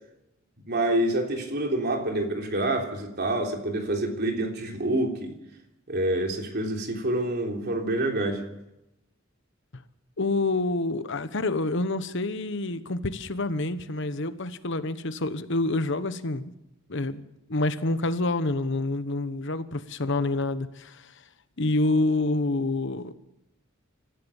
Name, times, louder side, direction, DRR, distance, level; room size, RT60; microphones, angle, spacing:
voice 1, 0.7-5.4 5.9-8.4, right 1 dB, 55° right, 2 dB, 3.4 m, -27 dB
voice 2, 10.2-16.5 16.9-17.2 17.5-21.1 21.6-23.1, left 2 dB, 65° left, 12 dB, 1.1 m, -27 dB
26.0 x 15.0 x 7.2 m, 0.89 s
head